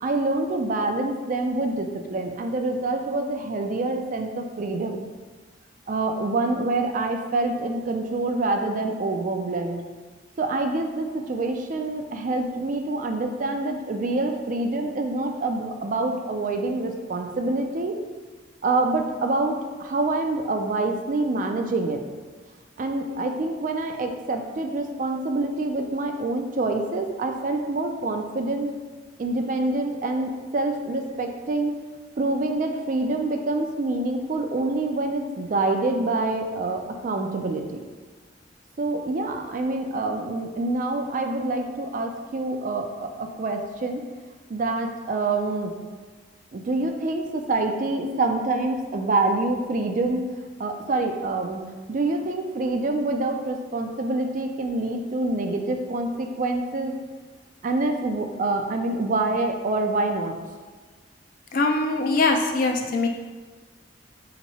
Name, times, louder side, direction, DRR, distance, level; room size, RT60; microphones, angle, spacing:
voice 1, 0.0-5.0 5.9-9.8 10.4-18.0 18.6-22.0 22.8-28.7 29.2-31.8 32.2-37.8 38.8-44.0 44.5-45.7 46.5-50.3 50.6-51.6 51.9-56.9 57.6-60.3, right 2 dB, 45° right, 4 dB, 0.4 m, -26 dB
voice 2, 61.5-63.1, left 3 dB, 50° left, 3 dB, 0.4 m, -22 dB
3.5 x 2.9 x 4.1 m, 1.4 s
head